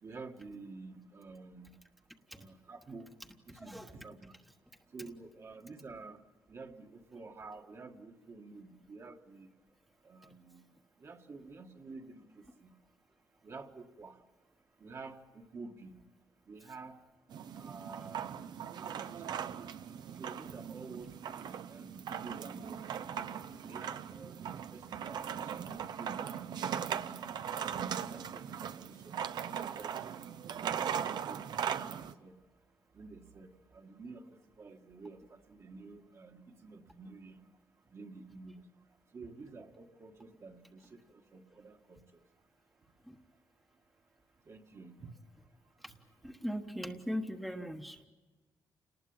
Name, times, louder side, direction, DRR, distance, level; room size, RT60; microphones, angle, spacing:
voice 1, 0.0-1.7 2.3-3.1 3.5-4.4 4.9-6.2 6.5-9.5 10.0-10.6 11.0-12.7 13.4-14.2 14.8-15.9 16.5-17.0 17.5-18.3 18.8-19.4 20.2-23.1 23.6-27.0 27.3-27.5 28.0-30.2 30.7-32.4 32.9-37.4 37.9-38.7 39.1-42.0 44.5-45.1 45.9-46.3, right 3 dB, 40° right, 3 dB, 1.8 m, -50 dB
voice 2, 3.5-3.9 43.1-43.2 45.8-45.9 46.2-48.1, equal, ahead, 3 dB, 1.2 m, -39 dB
sound 1, 17.3-32.1, right 8 dB, 70° right, 0.9 m, -39 dB
29.0 x 19.5 x 8.8 m, 1.2 s
wide cardioid pair, 145°, 8 cm